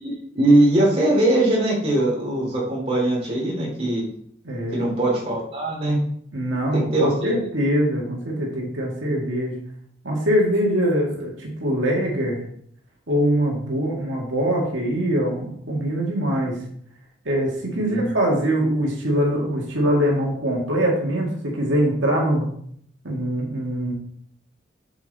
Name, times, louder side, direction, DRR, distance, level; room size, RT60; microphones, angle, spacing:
voice 1, 0.0-4.0 4.7-6.0 6.7-7.3 17.8-18.1, right 1 dB, 30° right, -3 dB, 3.0 m, -21 dB
voice 2, 4.4-4.9 6.3-9.5 10.0-12.4 13.1-16.6 17.3-22.5 23.0-23.9, equal, 85° right, -2 dB, 2.0 m, -23 dB
7.0 x 6.1 x 4.2 m, 0.65 s
head